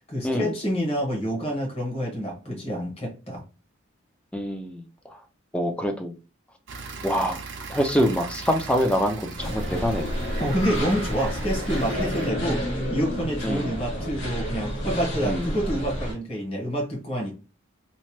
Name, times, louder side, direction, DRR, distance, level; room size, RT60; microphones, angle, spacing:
voice 1, 0.1-3.4 10.4-17.3, equal, 30° left, -1 dB, 1.0 m, -28 dB
voice 2, 4.3-4.8 5.5-6.1 7.0-7.4 7.7-10.2 13.4-13.7 15.2-15.5, equal, 5° left, 4 dB, 0.3 m, -25 dB
sound 1, 6.7-12.3, right 4 dB, 55° right, 0.5 m, -39 dB
sound 2, 9.4-16.1, equal, 70° left, 1.3 m, -30 dB
2.8 x 2.1 x 3.0 m, 0.34 s
head